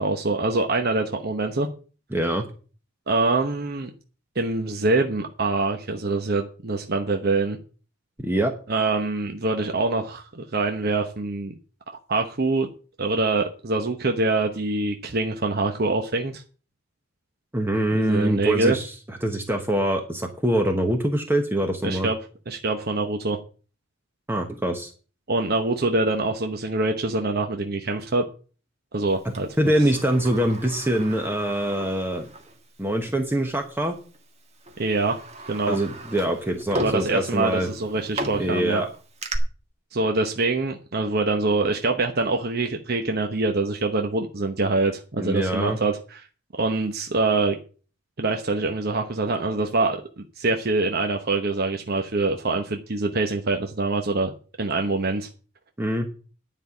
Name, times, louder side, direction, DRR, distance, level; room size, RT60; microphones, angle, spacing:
voice 1, 0.0-1.7 3.1-3.9 4.3-7.6 8.7-11.5 12.1-12.7 13.0-16.4 17.9-18.8 21.8-22.2 22.5-23.4 25.3-28.2 28.9-29.5 34.8-35.2 35.5-35.8 36.8-38.8 39.9-46.2 46.6-47.6 48.2-54.3 54.6-55.3, right 3 dB, 55° right, 5 dB, 1.0 m, -24 dB
voice 2, 2.1-2.4 8.2-8.5 17.5-22.1 24.3-24.9 29.2-32.3 32.8-34.0 35.7-37.7 38.4-38.9 45.2-45.8 55.8-56.1, right 1 dB, 10° right, 4 dB, 1.1 m, -24 dB
Sliding door, 29.3-32.6 32.9-33.0 34.0-34.2 34.6-39.4, right 1 dB, 35° right, 1.7 m, -36 dB
10.5 x 5.6 x 8.3 m, 0.38 s
head